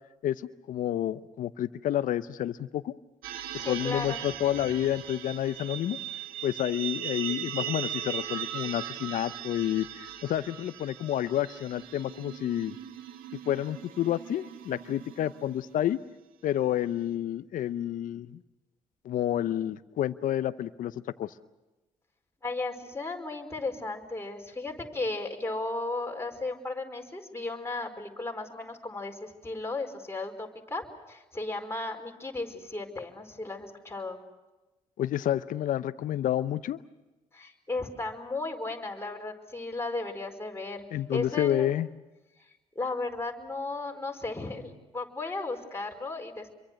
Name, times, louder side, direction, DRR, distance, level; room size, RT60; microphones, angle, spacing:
voice 1, 0.7-2.9 3.7-6.0 6.4-12.8 13.5-16.0 16.4-18.4 19.0-21.3 35.0-36.8 40.9-41.9, left 12 dB, 65° left, 14 dB, 0.8 m, -29 dB
sound 1, 3.2-15.8, right 11 dB, 75° right, 1.7 m, -39 dB
voice 2, 3.6-4.2 4.6-4.7 22.4-34.2 37.3-40.8 41.1-41.7 42.5-46.5, left 2 dB, 15° left, 2 dB, 5.0 m, -35 dB
27.5 x 23.5 x 6.5 m, 1.1 s
hypercardioid pair, 55°, 15 cm